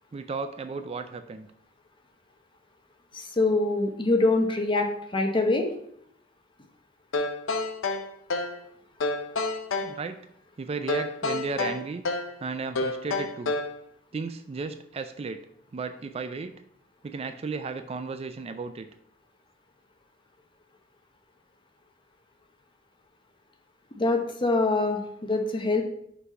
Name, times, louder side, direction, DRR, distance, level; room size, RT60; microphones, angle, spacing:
voice 1, 0.1-1.5 9.8-10.2 10.6-12.0 12.4-13.5 14.1-15.4 15.7-16.5 17.0-18.9, right 4 dB, 30° right, 9 dB, 0.3 m, -34 dB
voice 2, 3.1-5.7 24.0-25.8, left 2 dB, 25° left, 4 dB, 0.9 m, -24 dB
sound 1, 7.1-8.6 9.0-10.0 10.9-12.3 12.7-13.8, left 3 dB, 85° left, 0.7 m, -29 dB
5.7 x 4.0 x 5.4 m, 0.70 s
head